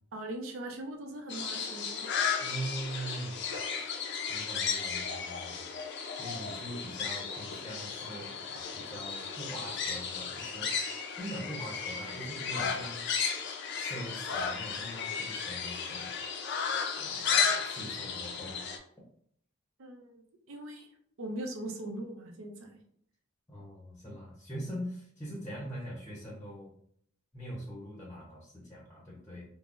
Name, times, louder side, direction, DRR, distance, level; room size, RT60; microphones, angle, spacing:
voice 1, 0.1-2.1 19.8-20.1 20.5-20.9 21.2-22.8, right 1 dB, 80° right, 2 dB, 0.5 m, -40 dB
sound 1, 1.3-18.8, left 6 dB, 60° left, 0.4 m, -34 dB
voice 2, 2.4-3.4 4.3-5.6 6.2-10.7 11.2-13.0 13.7-16.1 17.0-18.6 23.5-26.7 27.3-29.5, right 1 dB, 15° left, -4 dB, 0.7 m, -42 dB
3.7 x 2.0 x 2.4 m, 0.66 s
head